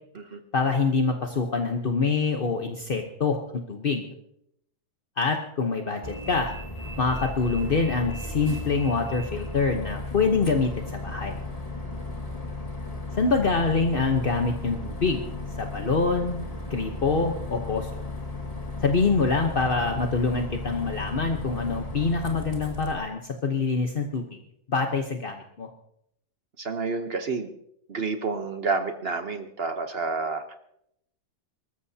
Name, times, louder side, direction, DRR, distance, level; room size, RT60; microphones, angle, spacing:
voice 1, 0.5-3.4 3.7-4.0 5.2-6.5 7.0-11.4 13.1-16.4 16.7-18.0 18.8-24.2 24.7-25.7, left 4 dB, 40° left, 3 dB, 0.8 m, -25 dB
Bus, 6.0-22.9, left 2 dB, 20° left, 1.6 m, -35 dB
voice 2, 26.6-27.5 27.9-30.5, right 4 dB, 50° right, 7 dB, 0.7 m, -29 dB
25.0 x 14.0 x 2.8 m, 0.74 s
omnidirectional pair, 2.2 m